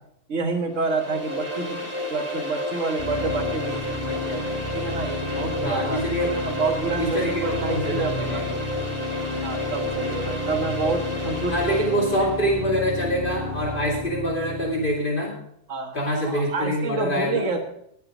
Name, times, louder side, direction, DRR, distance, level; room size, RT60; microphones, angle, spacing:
voice 1, 0.3-8.4 8.7-8.8 9.4-11.5 15.7-16.0 16.2-17.6, right 3 dB, 90° right, 4 dB, 1.8 m, -28 dB
sound 1, 0.7-12.4, left 2 dB, 25° left, 2.7 m, -31 dB
sound 2, 3.0-15.0, left 2 dB, 30° right, 2.0 m, -32 dB
voice 2, 5.6-6.4 7.0-8.6 11.5-15.4 15.9-17.5, equal, 45° left, -2 dB, 2.7 m, -25 dB
19.5 x 6.7 x 5.0 m, 0.70 s
omnidirectional pair, 1.2 m